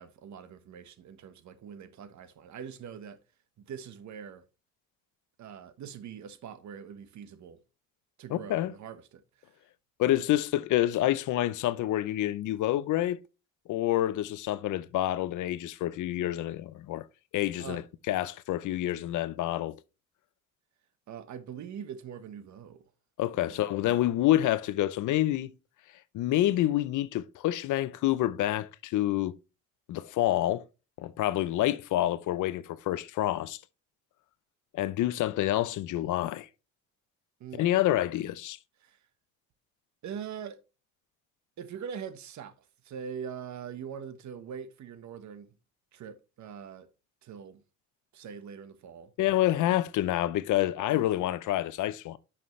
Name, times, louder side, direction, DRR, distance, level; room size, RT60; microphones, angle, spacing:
voice 1, 0.0-3.2 3.6-4.4 5.4-7.6 8.2-9.5 10.1-10.2 17.6-17.8 21.1-22.8 23.5-24.1 37.4-37.7 38.8-39.0 40.0-40.6 41.6-42.6 42.8-45.5 45.9-46.9 47.2-47.6 48.1-49.1 50.9-51.1, right 7 dB, 70° right, 1.3 m, -43 dB
voice 2, 8.3-8.7 10.0-13.2 13.7-17.1 17.3-19.8 23.2-25.5 26.1-29.4 29.9-30.7 31.0-33.6 34.7-36.5 37.6-38.6 49.2-52.2, left 14 dB, 80° left, 0.7 m, -28 dB
10.5 x 5.8 x 3.2 m
cardioid pair, 90°, 30 cm